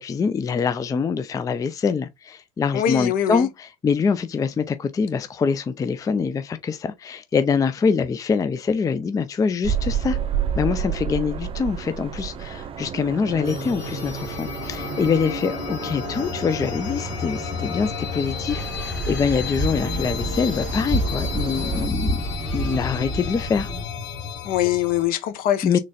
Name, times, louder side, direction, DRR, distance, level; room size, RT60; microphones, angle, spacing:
voice 1, 0.0-10.2 10.6-22.2 22.5-23.7 25.6-25.8, left 5 dB, 20° left, 0.4 m, -24 dB
voice 2, 2.7-3.5 24.4-25.8, left 11 dB, 65° left, 0.9 m, -23 dB
sound 1, 9.6-21.9, right 7 dB, 35° right, 0.5 m, -31 dB
sound 2, 13.4-25.1, left 6 dB, 80° left, 1.2 m, -32 dB
sound 3, 18.5-23.8, right 1 dB, ahead, 0.8 m, -28 dB
4.0 x 3.1 x 2.3 m
supercardioid pair, 100°, 16 cm